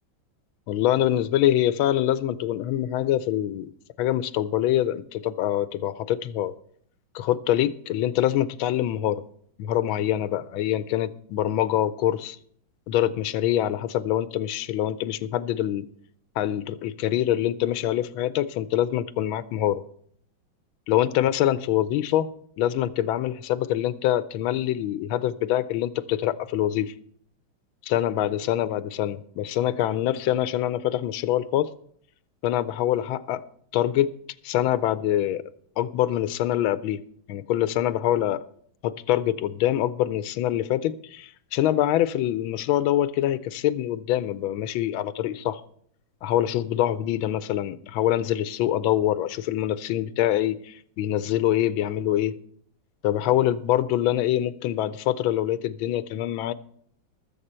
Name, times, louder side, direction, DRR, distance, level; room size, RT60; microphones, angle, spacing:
voice 1, 0.7-3.7 4.0-6.5 7.1-9.2 9.6-12.4 12.9-15.8 16.4-19.8 20.9-22.3 22.6-26.9 27.9-31.7 32.4-33.4 33.7-34.1 34.4-35.4 35.8-37.0 37.3-38.4 38.8-45.6 46.2-52.3 53.0-56.5, left 12 dB, 90° left, 1.5 m, -25 dB
20.5 x 7.4 x 4.3 m
omnidirectional pair, 2.2 m